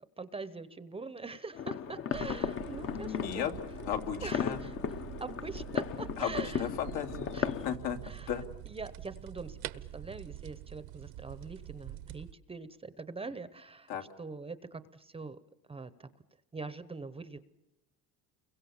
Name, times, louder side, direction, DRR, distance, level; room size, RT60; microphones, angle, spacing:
voice 1, 0.2-3.5 4.2-4.8 5.2-6.7 7.3-7.6 8.0-8.3 8.7-13.9 14.2-15.4 15.7-16.1 16.5-17.4, right 3 dB, 15° right, 13 dB, 0.8 m, -43 dB
sound 1, 1.5-7.8, left 8 dB, 35° left, 0.9 m, -36 dB
sound 2, 2.1-12.3, right 14 dB, 75° right, 1.2 m, -46 dB
voice 2, 2.9-3.5 3.8-4.6 6.2-8.0 8.3-8.5 13.9-14.0, left 9 dB, 75° left, 4 dB, 2.9 m, -35 dB
29.5 x 22.5 x 7.2 m, 0.92 s
cardioid pair, 145°, 37 cm